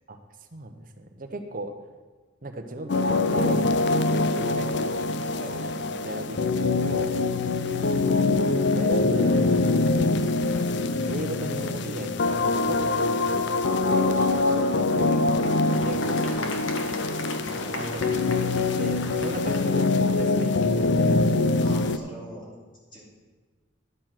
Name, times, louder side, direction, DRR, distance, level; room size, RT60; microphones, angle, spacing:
voice 1, 0.5-1.7 2.4-2.9 3.3-3.7 4.3-5.0 5.4-7.2 8.0-8.4 8.7-10.3 11.1-13.5 13.8-15.3 15.7-17.0 17.5-18.3 18.5-21.5, right 1 dB, 45° right, 6 dB, 0.9 m, -37 dB
sound 1, 2.9-22.0, left 3 dB, 60° left, 0.5 m, -24 dB
Applause, 15.4-20.9, left 3 dB, 85° left, 1.3 m, -39 dB
voice 2, 17.2-18.1 19.2-19.4 21.6-22.5 22.9-23.1, equal, 25° left, -5 dB, 3.0 m, -43 dB
11.5 x 7.0 x 5.9 m, 1.4 s
head